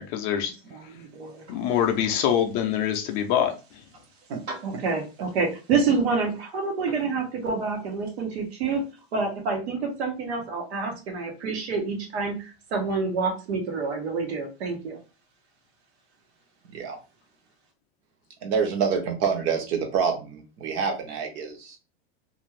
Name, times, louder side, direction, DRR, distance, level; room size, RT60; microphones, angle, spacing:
voice 1, 0.0-0.5 1.5-3.5, left 9 dB, 40° left, 0.4 m, -24 dB
voice 2, 0.7-1.4 4.5-8.8 9.1-15.0, right 4 dB, 80° right, 1.1 m, -28 dB
voice 3, 18.4-21.8, right 6 dB, 45° right, 0.8 m, -27 dB
2.5 x 2.3 x 3.2 m
supercardioid pair, 145°, 32 cm